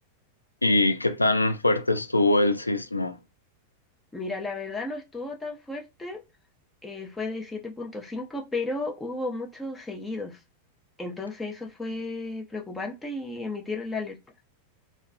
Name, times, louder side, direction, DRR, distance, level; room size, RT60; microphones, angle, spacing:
voice 1, 0.6-3.2, left 2 dB, 85° left, 0.3 m, -23 dB
voice 2, 4.1-6.2 6.8-10.4 11.0-14.2, left 2 dB, 10° left, 0.5 m, -34 dB
2.3 x 2.1 x 2.5 m
figure-of-eight pair, 90°, 0 cm